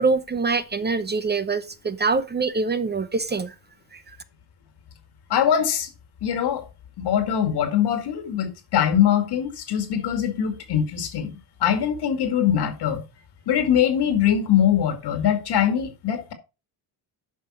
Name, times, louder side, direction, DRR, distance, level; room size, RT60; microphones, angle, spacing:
voice 1, 0.0-3.5 3.9-4.2, right 4 dB, 25° right, 0.7 m, -24 dB
voice 2, 5.3-5.9 6.2-6.6 7.0-13.0 13.5-16.3, left 9 dB, 70° left, 2.1 m, -22 dB
9.2 x 5.5 x 4.2 m
cardioid pair, 95°, 42 cm